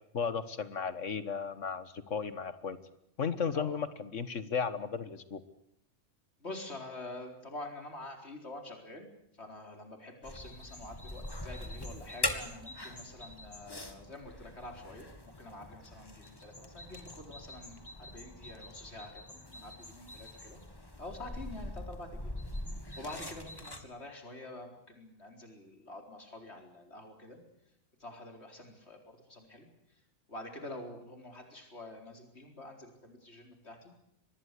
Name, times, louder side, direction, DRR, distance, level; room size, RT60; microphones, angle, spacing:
voice 1, 0.1-2.8 3.2-5.4, left 6 dB, 85° left, 12 dB, 1.9 m, -35 dB
voice 2, 6.4-9.1 9.4-20.6 21.0-22.4 23.0-27.4 28.0-29.0 29.3-29.7 30.3-33.9, left 2 dB, 60° left, 3 dB, 4.7 m, -47 dB
sound 1, 10.2-23.8, left 1 dB, 20° left, 2.1 m, -42 dB
24.5 x 20.0 x 8.4 m, 0.77 s
omnidirectional pair, 1.2 m